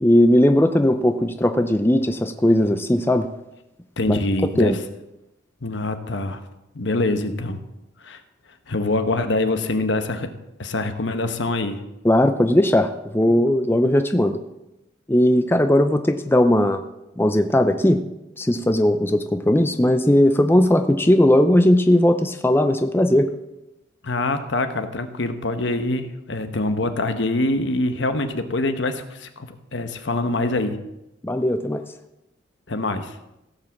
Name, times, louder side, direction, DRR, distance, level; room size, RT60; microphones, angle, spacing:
voice 1, 0.0-3.3 4.1-4.8 12.0-14.4 15.1-16.8 17.2-18.0 18.4-23.3 31.2-31.8, left 1 dB, 10° left, 7 dB, 0.5 m, -18 dB
voice 2, 4.0-4.8 5.6-6.4 6.7-7.6 8.0-8.2 8.7-10.3 10.6-11.8 24.0-30.8 32.7-33.2, left 2 dB, 70° left, 8 dB, 1.1 m, -24 dB
16.5 x 5.5 x 7.3 m, 0.92 s
head